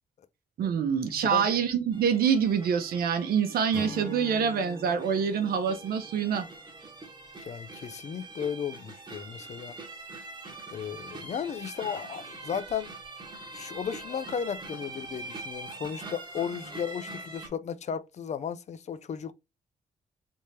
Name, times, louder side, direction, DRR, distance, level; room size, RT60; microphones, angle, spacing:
voice 1, 0.6-6.5, right 7 dB, 85° right, 0.8 m, -26 dB
sound 1, 1.9-17.5, right 2 dB, 30° right, 1.1 m, -44 dB
Acoustic guitar / Strum, 3.7-7.2, left 1 dB, 20° left, 1.1 m, -43 dB
voice 2, 7.4-9.7 10.7-12.9 13.5-19.3, left 8 dB, 50° left, 0.4 m, -35 dB
3.5 x 3.2 x 2.7 m
cardioid pair, 110°, 15 cm